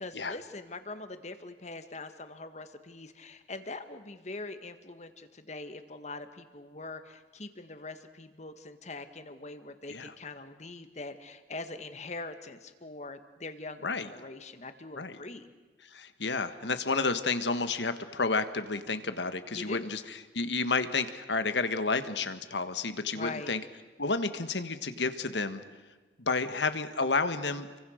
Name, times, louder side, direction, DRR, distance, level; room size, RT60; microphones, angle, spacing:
voice 1, 0.0-15.5 19.5-19.9 23.1-23.6, left 3 dB, 40° left, 9 dB, 1.8 m, -43 dB
voice 2, 15.9-20.0 20.3-23.6 24.0-25.6 26.2-27.8, left 4 dB, 85° left, 10 dB, 1.7 m, -31 dB
30.0 x 24.0 x 6.6 m, 1.3 s
head